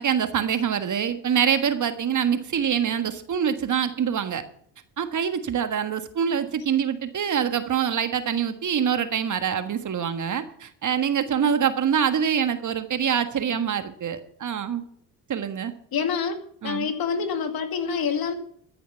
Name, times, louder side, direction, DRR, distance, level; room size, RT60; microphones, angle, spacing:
voice 1, 0.0-4.4 5.0-14.8 15.3-15.7 16.6-16.9, right 8 dB, 40° right, 10 dB, 1.5 m, -25 dB
voice 2, 15.9-16.4 16.6-18.3, left 6 dB, 50° left, 7 dB, 2.3 m, -26 dB
13.5 x 10.0 x 5.8 m, 0.64 s
hypercardioid pair, 55°, 45 cm